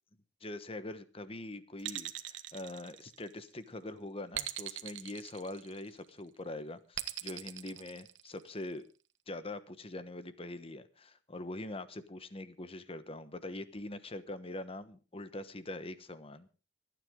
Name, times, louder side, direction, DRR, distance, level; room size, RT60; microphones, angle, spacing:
voice 1, 0.4-8.8 9.3-16.5, left 2 dB, 30° left, 12 dB, 1.1 m, -43 dB
sound 1, 1.8-3.5 4.3-6.0 6.9-8.6, right 13 dB, 85° right, 1.2 m, -41 dB
25.5 x 9.5 x 3.7 m, 0.34 s
head